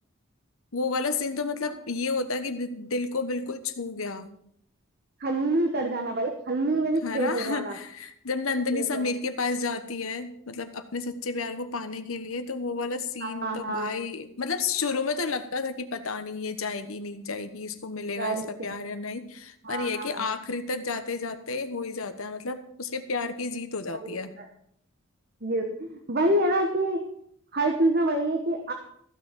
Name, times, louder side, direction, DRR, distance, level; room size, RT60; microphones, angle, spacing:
voice 1, 0.7-4.3 7.0-24.3, left 4 dB, 80° left, 9 dB, 1.2 m, -31 dB
voice 2, 5.2-7.8 8.7-9.1 13.2-14.0 18.2-18.8 19.6-20.3 24.0-24.4 25.4-27.0 27.5-28.7, right 1 dB, 45° right, 4 dB, 1.2 m, -27 dB
14.5 x 6.4 x 7.3 m, 0.68 s
head